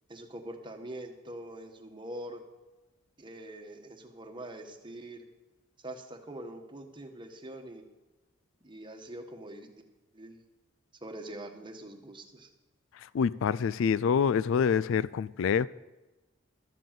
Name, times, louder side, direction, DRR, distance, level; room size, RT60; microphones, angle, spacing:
voice 1, 0.1-2.4 3.2-5.2 5.8-7.8 8.6-9.8 10.1-10.4 11.0-12.5, right 1 dB, 25° right, 1.3 m, -44 dB
voice 2, 13.1-15.7, left 6 dB, 65° left, 0.3 m, -26 dB
13.0 x 7.6 x 7.5 m
head